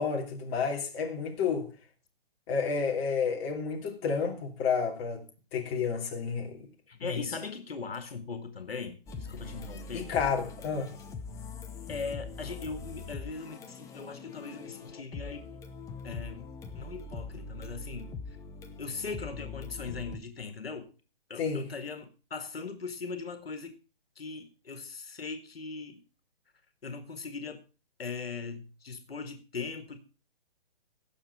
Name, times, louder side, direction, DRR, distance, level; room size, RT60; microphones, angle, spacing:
voice 1, 0.0-1.7 2.5-5.2 5.5-6.7 7.0-7.2 9.9-10.9 21.4-21.7, left 5 dB, 30° left, 2.8 m, -30 dB
voice 2, 6.9-10.1 11.9-15.4 16.0-16.5 16.7-18.1 18.8-20.9 21.3-23.8 24.2-26.0 26.8-27.6 28.0-30.0, left 4 dB, 85° left, 1.9 m, -39 dB
sound 1, 9.1-20.2, left 4 dB, 10° left, 0.9 m, -42 dB
17.5 x 6.7 x 4.7 m
hypercardioid pair, 140°, 29 cm